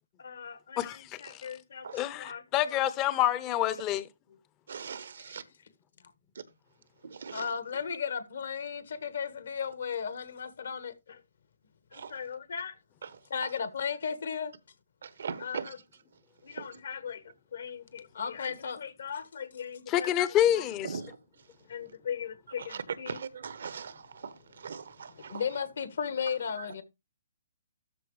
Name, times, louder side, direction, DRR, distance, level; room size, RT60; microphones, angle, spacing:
voice 1, 0.2-2.8 5.2-5.3 7.3-11.2 11.9-12.8 13.3-14.5 15.4-15.8 16.4-20.1 20.4-20.6 21.7-23.2 25.1-26.8, left 7 dB, 65° left, 1.5 m, -36 dB
voice 2, 0.8-1.5 1.9-4.1 19.9-20.9, left 12 dB, 25° left, 0.8 m, -27 dB
voice 3, 4.7-5.4 7.0-7.5 11.9-12.1 13.0-13.5 15.0-15.7 16.5-16.8 20.8-21.2 22.6-25.4 26.6-26.7, right 6 dB, 65° right, 1.0 m, -40 dB
13.0 x 4.6 x 3.2 m
figure-of-eight pair, 130°, 0 cm